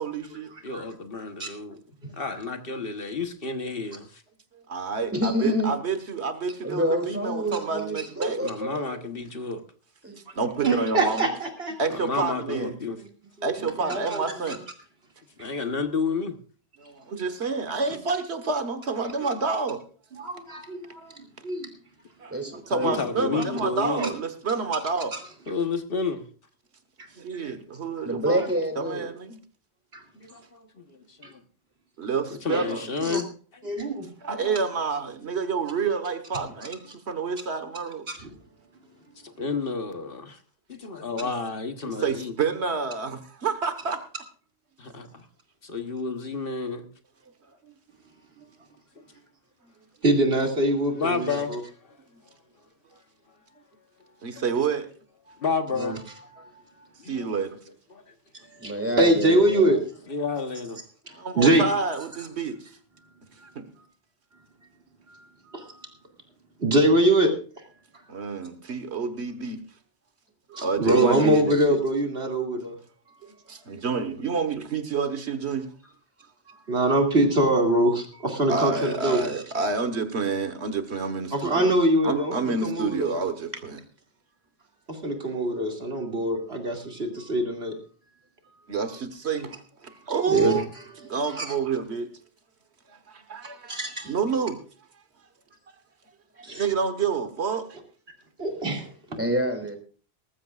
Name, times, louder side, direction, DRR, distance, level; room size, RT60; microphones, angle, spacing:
voice 1, 0.0-0.5 4.7-8.4 10.4-11.2 11.8-12.8 13.4-14.6 16.9-19.8 22.2-22.3 22.7-25.1 27.2-28.4 28.8-29.4 32.0-32.9 34.2-36.8 37.1-38.0 41.2-41.3 41.8-44.0 54.2-54.9 57.1-57.6 61.2-62.6 63.5-63.6 68.1-69.6 70.6-71.8 73.5-75.7 78.5-81.7 82.0-83.8 88.7-89.6 90.1-90.6 91.0-92.1 93.3-93.7 94.1-94.6 96.5-97.7, right 5 dB, 90° right, 1.6 m, -28 dB
voice 2, 0.6-1.8 2.2-4.2 8.4-9.6 11.9-13.0 15.4-16.4 22.8-24.0 25.5-26.3 27.6-27.7 30.1-31.4 32.4-33.3 34.4-34.6 39.2-40.4 40.7-42.3 44.8-45.3 45.6-46.9 50.9-51.6 51.8-52.0 55.4-56.0 57.0-57.3 57.9-58.0 60.1-60.8, left 4 dB, 60° left, 1.4 m, -31 dB
voice 3, 2.0-2.4 8.0-8.1 10.6-11.8 13.4-14.6 20.2-21.2 21.4-21.7 24.0-24.1 25.1-25.2 29.9-30.0 32.5-32.6 33.0-33.2 33.6-34.4 38.1-38.3 50.0-51.6 55.7-56.0 56.4-56.5 58.6-58.7 59.0-59.8 61.1-61.7 65.5-65.8 66.6-67.6 70.5-72.8 76.7-79.4 81.3-83.1 84.9-87.7 90.3-90.6 91.2-91.5 93.7-94.1 96.4-96.6 98.4-99.2, right 1 dB, 70° right, 2.7 m, -24 dB
voice 4, 5.1-5.7 6.6-9.0 10.0-10.2 22.3-23.3 28.0-29.1 58.6-59.8 99.2-99.8, equal, 10° right, 2.6 m, -28 dB
19.5 x 14.5 x 2.4 m
omnidirectional pair, 1.1 m